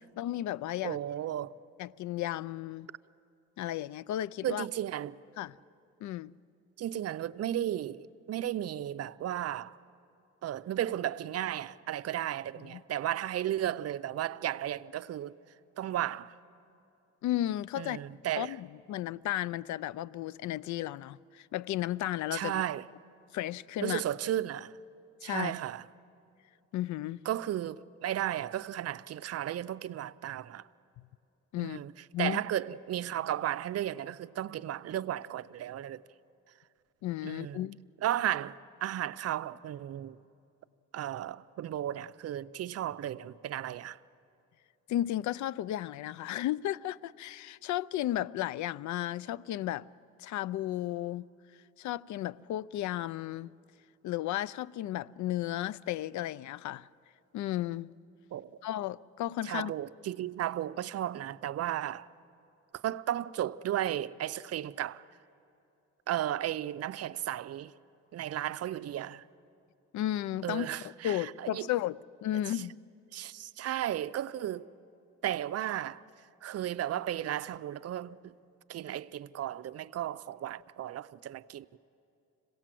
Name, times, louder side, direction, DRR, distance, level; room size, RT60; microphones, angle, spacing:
voice 1, 0.2-1.0 1.8-2.9 3.6-4.7 5.4-5.5 6.0-6.3 12.7-12.8 17.2-18.0 18.4-22.6 23.3-24.0 25.2-25.5 26.7-27.2 31.5-31.8 32.1-32.4 37.0-37.8 44.9-49.9 50.2-51.3 51.8-53.5 54.0-56.9 57.3-57.9 58.6-59.7 69.9-70.7 71.0-72.7, left 13 dB, 70° left, 0.5 m, -34 dB
voice 2, 0.8-1.5 4.4-5.2 6.8-9.8 10.4-15.4 15.8-16.4 17.8-18.6 22.3-22.9 23.8-24.8 25.2-25.9 27.2-30.7 31.6-31.9 32.2-36.0 37.2-37.7 38.0-40.2 40.9-44.0 58.3-58.5 59.4-62.1 62.7-65.0 66.1-67.7 68.1-69.3 70.4-71.7 72.5-72.6 73.1-74.7 75.2-76.0 76.4-78.4 78.7-81.8, right 12 dB, 55° right, 0.5 m, -34 dB
26.5 x 17.5 x 7.6 m
cardioid pair, 90°, 30 cm